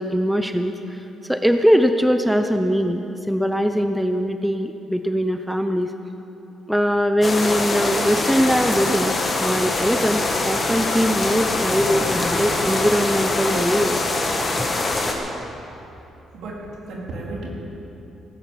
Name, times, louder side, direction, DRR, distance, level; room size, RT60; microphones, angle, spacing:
voice 1, 0.0-5.9 6.7-9.1 9.4-14.0, equal, ahead, 7 dB, 0.7 m, -21 dB
sound 1, 7.2-15.1, left 2 dB, 35° left, 2.3 m, -23 dB
voice 2, 16.3-17.5, right 2 dB, 75° right, -3 dB, 3.8 m, -33 dB
18.0 x 10.0 x 7.3 m, 3.0 s
cardioid pair, 90°, 0 cm